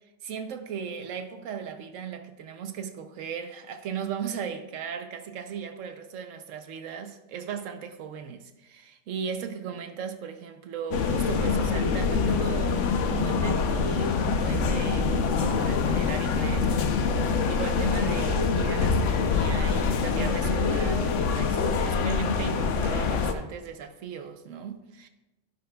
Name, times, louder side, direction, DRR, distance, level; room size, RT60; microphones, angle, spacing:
voice 1, 0.2-25.1, right 7 dB, 80° right, 1.0 m, -37 dB
sound 1, 10.9-23.3, left 5 dB, 70° left, 1.1 m, -25 dB
11.5 x 10.5 x 2.3 m
omnidirectional pair, 1.3 m